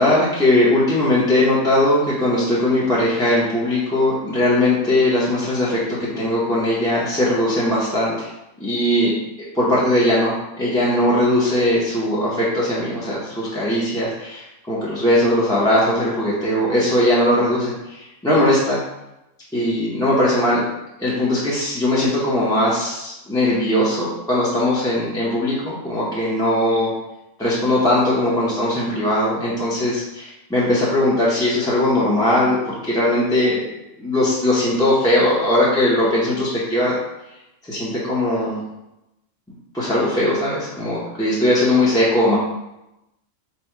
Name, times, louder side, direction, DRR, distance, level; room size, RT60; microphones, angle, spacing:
voice 1, 0.0-8.3 8.6-17.7 18.2-18.8 19.5-20.6 21.0-26.9 27.4-33.6 34.0-37.0 37.7-38.6 39.7-42.3, left 1 dB, 5° left, -8 dB, 0.7 m, -19 dB
4.2 x 2.3 x 4.5 m, 0.90 s
omnidirectional pair, 1.4 m